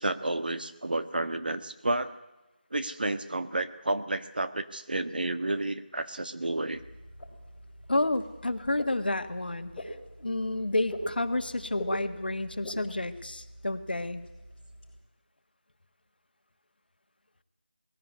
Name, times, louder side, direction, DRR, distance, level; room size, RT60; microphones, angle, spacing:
voice 1, 0.0-2.1 2.7-6.8, right 2 dB, 65° right, 10 dB, 1.6 m, -31 dB
sound 1, 6.7-15.0, equal, 10° left, 5.3 m, -43 dB
voice 2, 7.9-14.2, left 2 dB, 70° left, 8 dB, 1.7 m, -30 dB
20.5 x 17.0 x 9.5 m, 1.0 s
figure-of-eight pair, 175°, 5 cm